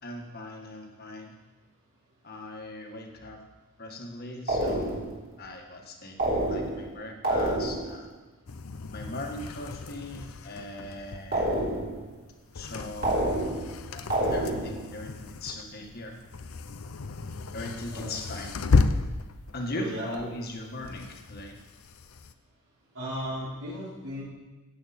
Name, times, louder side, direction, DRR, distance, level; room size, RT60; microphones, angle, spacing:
voice 1, 0.0-1.3 2.2-3.4 3.8-5.0 5.4-6.2 6.5-8.1 8.9-11.5 12.5-13.5 13.9-14.0 14.3-16.1 17.5-18.6 19.5-21.6, left 1 dB, 45° left, 2 dB, 1.7 m, -39 dB
sound 1, 4.5-5.2 6.2-6.9 7.2-8.0 11.3-12.0 13.0-13.8 14.1-14.8, right 1 dB, 40° right, 3.5 m, -28 dB
sound 2, 8.5-22.3, left 4 dB, 70° left, 0.6 m, -33 dB
voice 2, 19.7-20.2 22.9-24.2, equal, 70° right, -8 dB, 4.8 m, -35 dB
15.0 x 9.0 x 4.3 m, 1.2 s
head